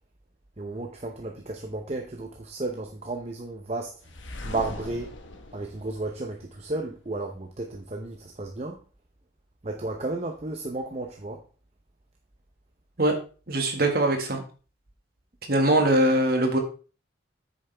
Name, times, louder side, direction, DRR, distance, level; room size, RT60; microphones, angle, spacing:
voice 1, 0.6-3.9 4.4-5.1 5.5-8.8 9.6-11.4, right 2 dB, 35° right, 0.7 m, -33 dB
sound 1, 4.0-7.0, left 1 dB, 85° left, 1.2 m, -41 dB
voice 2, 13.5-14.4 15.5-16.6, right 1 dB, 50° right, 1.7 m, -22 dB
8.5 x 6.7 x 3.4 m
head